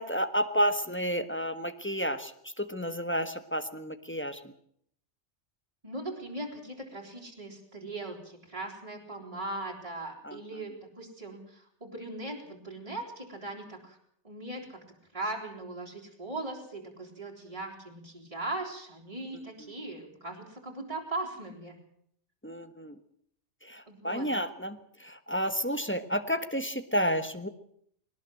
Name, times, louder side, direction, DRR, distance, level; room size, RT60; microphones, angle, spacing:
voice 1, 0.0-4.4 10.2-10.4 22.4-23.0 23.6-27.5, equal, 10° left, 10 dB, 1.3 m, -31 dB
voice 2, 5.8-14.0 14.2-14.8 15.1-21.8 23.9-24.3, right 2 dB, 30° right, -2 dB, 3.7 m, -39 dB
20.5 x 18.5 x 7.7 m, 0.66 s
omnidirectional pair, 1.2 m